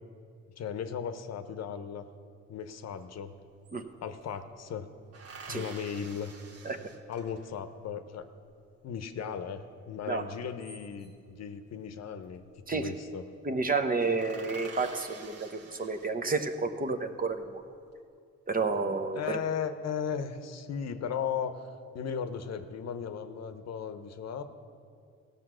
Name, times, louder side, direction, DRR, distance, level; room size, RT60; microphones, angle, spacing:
voice 1, 0.6-2.1 2.5-3.3 4.0-4.9 5.5-6.3 7.1-8.3 8.8-11.1 11.4-12.4 12.7-13.2 19.1-21.7 21.9-24.4, left 7 dB, 60° left, 9 dB, 0.8 m, -36 dB
sound 1, 3.0-3.1 3.3-4.4 5.1-7.6 10.3-11.3 12.5-12.8 13.1-13.3 13.6-13.7 14.0-16.5 17.1-17.8, right 4 dB, 55° right, 1.4 m, -49 dB
voice 2, 13.4-17.6 18.5-19.2, right 3 dB, 30° right, 7 dB, 0.8 m, -30 dB
16.0 x 7.0 x 6.2 m, 2.4 s
cardioid pair, 90°, 30 cm